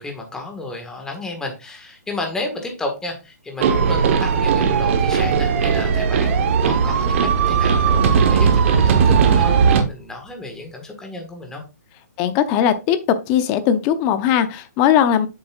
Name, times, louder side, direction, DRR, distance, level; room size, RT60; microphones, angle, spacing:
voice 1, 0.0-11.6, left 2 dB, 5° left, 1.5 m, -32 dB
sound 1, 3.6-9.8, right 6 dB, 45° right, 1.1 m, -18 dB
sound 2, 3.7-10.1, right 4 dB, 70° right, 2.0 m, -26 dB
voice 2, 12.2-13.0 13.3-15.3, left 9 dB, 30° left, 0.7 m, -18 dB
7.7 x 7.2 x 2.4 m
hypercardioid pair, 145°, 9 cm